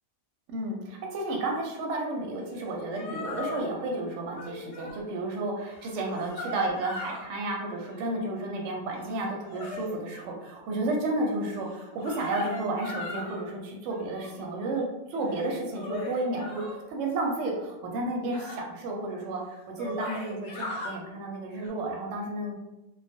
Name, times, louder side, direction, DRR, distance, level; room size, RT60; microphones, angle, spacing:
voice 1, 0.5-14.8 15.1-16.6 16.9-22.5, right 2 dB, 65° right, 0 dB, 0.8 m, -32 dB
sound 1, 2.6-2.7 2.9-3.6 4.3-5.0 5.6-7.3 7.7-8.2 8.9-10.3 11.7-13.4 13.9-14.4 15.1-16.8 18.3-18.6 19.2-19.3 19.6-20.9 21.5-21.7, left 2 dB, 60° left, 0.8 m, -39 dB
2.3 x 2.1 x 2.6 m, 0.98 s
omnidirectional pair, 1.5 m